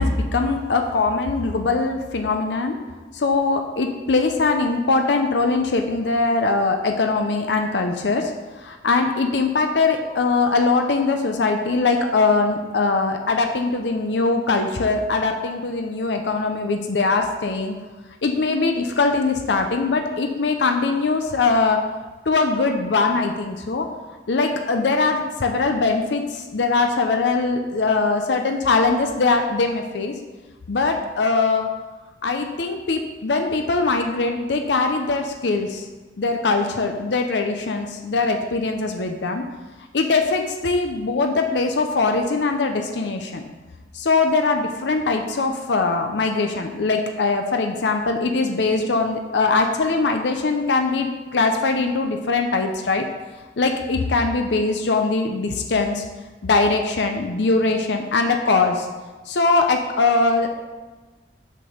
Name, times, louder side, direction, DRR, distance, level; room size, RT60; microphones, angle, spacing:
voice 1, 0.0-2.8 3.1-8.3 8.6-17.8 18.2-21.8 22.3-23.9 24.3-30.1 30.7-31.7 32.2-35.8 36.2-39.4 39.9-43.4 43.9-53.1 53.6-56.0 56.4-58.9 59.3-60.5, left 3 dB, 80° left, 4 dB, 0.6 m, -21 dB
6.4 x 6.1 x 5.0 m, 1.3 s
head